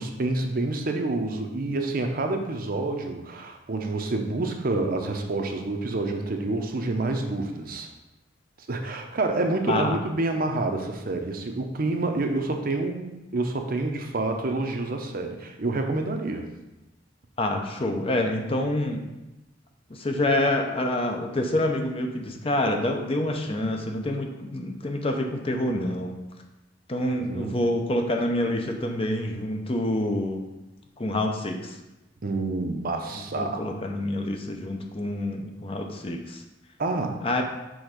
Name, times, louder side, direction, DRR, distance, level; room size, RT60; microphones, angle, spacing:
voice 1, 0.0-7.9 8.7-16.5 27.1-27.5 32.2-33.6 36.8-37.2, right 2 dB, 50° right, 4 dB, 0.7 m, -28 dB
voice 2, 17.4-19.0 19.9-26.1 26.9-30.4 31.0-31.8 33.2-36.4 37.2-37.4, left 1 dB, 30° left, 3 dB, 0.7 m, -27 dB
6.3 x 3.5 x 5.1 m, 1.0 s
head